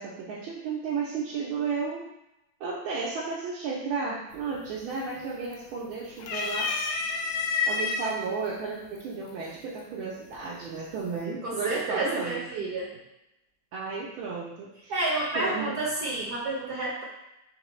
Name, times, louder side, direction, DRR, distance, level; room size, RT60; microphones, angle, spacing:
voice 1, 0.0-2.1 2.6-6.7 7.7-12.4 13.7-14.9 15.3-15.8, right 5 dB, 80° right, -5 dB, 1.5 m, -33 dB
sound 1, 4.3-4.7 5.1-5.8 6.2-8.1 9.0-9.1 10.3-10.8, left 4 dB, 85° left, 1.4 m, -29 dB
voice 2, 11.4-12.9 14.9-17.0, right 2 dB, 60° right, -4 dB, 1.1 m, -30 dB
4.4 x 3.2 x 3.0 m, 0.89 s
omnidirectional pair, 2.3 m